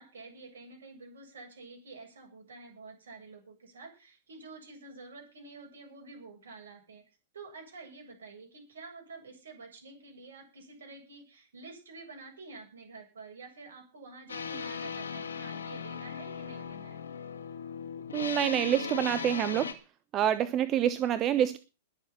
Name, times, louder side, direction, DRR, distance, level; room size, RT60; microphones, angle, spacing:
voice 1, 0.0-7.0 7.3-17.0 21.0-21.2, right 3 dB, 70° right, 2 dB, 7.6 m, -49 dB
sound 1, 14.3-19.7, left 6 dB, 80° left, 2.2 m, -38 dB
voice 2, 18.1-19.7 20.1-21.6, right 10 dB, 35° right, 14 dB, 1.0 m, -27 dB
21.0 x 7.3 x 5.9 m, 0.33 s
figure-of-eight pair, 100°, 0 cm